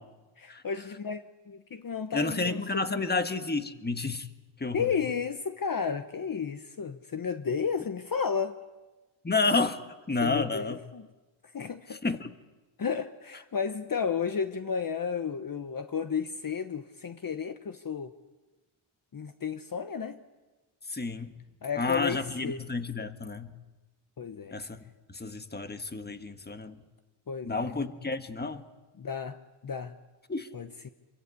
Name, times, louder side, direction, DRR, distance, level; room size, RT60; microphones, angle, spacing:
voice 1, 0.4-3.2 4.7-8.6 10.2-11.0 11.5-12.0 12.8-18.1 19.1-20.2 21.6-22.6 24.2-24.5 27.3-27.7 29.0-29.9 30.5-30.9, left 6 dB, 40° left, 9 dB, 1.1 m, -33 dB
voice 2, 2.1-4.3 4.6-4.9 9.2-9.8 10.1-10.8 11.9-12.3 20.9-21.3 21.8-23.5 24.5-24.8 25.1-26.8 27.4-28.6 30.3-30.5, left 3 dB, 20° left, 9 dB, 1.5 m, -30 dB
27.0 x 23.0 x 8.5 m, 1.2 s
wide cardioid pair, 100°, 50 cm